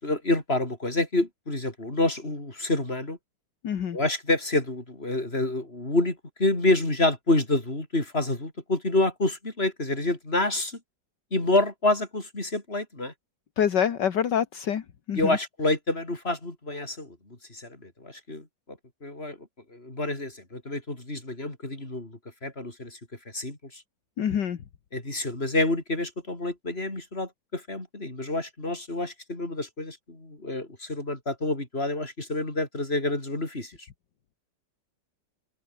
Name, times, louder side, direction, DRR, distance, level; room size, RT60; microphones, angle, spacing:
voice 1, 0.0-3.2 3.9-10.8 11.3-13.1 15.1-17.2 17.5-18.5 19.0-19.4 19.7-23.0 23.3-23.8 24.9-33.8, left 2 dB, 30° left, 5.5 m, -28 dB
voice 2, 3.6-4.0 13.6-14.8 15.1-15.4 24.2-24.6, left 8 dB, 70° left, 2.0 m, -26 dB
open air
omnidirectional pair, 2.0 m